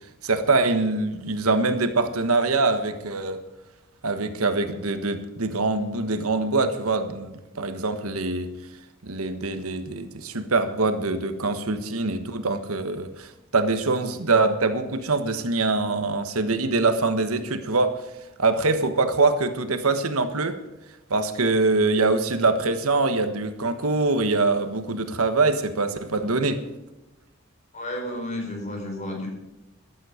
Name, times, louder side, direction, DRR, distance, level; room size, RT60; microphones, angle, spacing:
voice 1, 0.2-3.4 4.0-8.5 9.0-18.0 18.4-20.6 21.1-26.6, right 3 dB, 85° right, 9 dB, 1.4 m, -24 dB
voice 2, 27.7-29.3, left 1 dB, 30° left, 1 dB, 4.5 m, -32 dB
15.0 x 12.5 x 5.1 m, 0.98 s
head